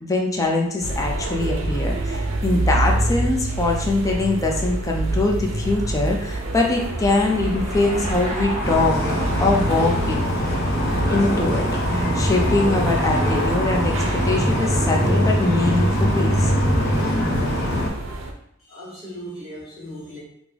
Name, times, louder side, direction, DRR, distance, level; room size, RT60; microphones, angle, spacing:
voice 1, 0.0-9.0 9.4-10.2 11.1-16.5, left 2 dB, 15° left, 0 dB, 0.4 m, -22 dB
sound 1, 0.8-18.3, right 2 dB, 75° right, 0.5 m, -28 dB
Car passing by / Engine, 5.1-11.8, right 1 dB, 35° right, 1.0 m, -35 dB
sound 2, 8.6-17.9, equal, 55° left, 0.7 m, -22 dB
voice 2, 18.6-20.2, equal, ahead, -12 dB, 1.4 m, -37 dB
3.3 x 2.0 x 3.5 m, 0.73 s
head